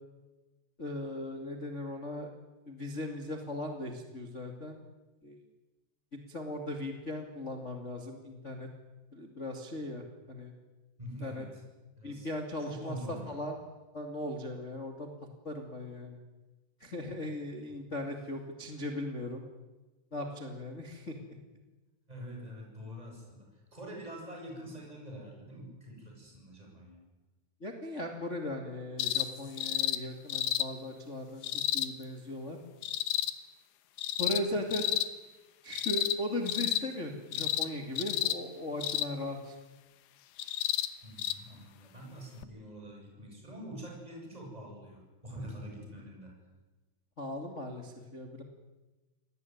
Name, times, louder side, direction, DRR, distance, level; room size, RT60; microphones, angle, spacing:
voice 1, 0.8-2.3 2.6-4.8 5.2-5.4 6.3-8.7 9.1-10.5 11.2-11.4 12.0-13.6 13.9-15.1 15.4-16.2 16.8-19.4 20.1-21.2 27.6-31.4 31.7-32.6 34.2-34.9 35.6-39.6 47.2-48.4, left 1 dB, 40° left, 3 dB, 1.0 m, -38 dB
voice 2, 11.0-11.6 12.0-12.3 12.6-13.4 22.1-27.0 41.0-46.3, right 1 dB, 5° right, 0 dB, 7.5 m, -45 dB
sound 1, 29.0-29.3 29.6-30.0 30.3-30.7 31.4-31.9 32.8-33.3 34.0-34.4 34.7-35.1 35.7-36.2 36.5-36.8 37.3-37.7 38.0-38.4 38.8-39.1 40.4-40.9 41.2-41.3 42.4-42.5, left 13 dB, 80° left, 2.2 m, -31 dB
26.5 x 19.0 x 9.6 m, 1.2 s
omnidirectional pair, 5.8 m